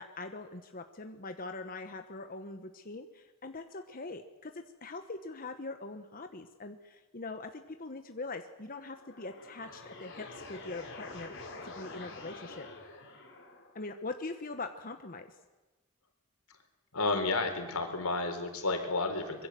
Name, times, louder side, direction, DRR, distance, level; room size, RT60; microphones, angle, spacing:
voice 1, 0.0-12.7 13.7-15.4, left 3 dB, 40° left, 7 dB, 1.2 m, -42 dB
sound 1, 8.8-13.8, left 2 dB, 55° left, 5.3 m, -47 dB
voice 2, 16.9-19.5, left 3 dB, 85° left, 6 dB, 4.1 m, -31 dB
24.5 x 22.5 x 7.7 m, 1.2 s
head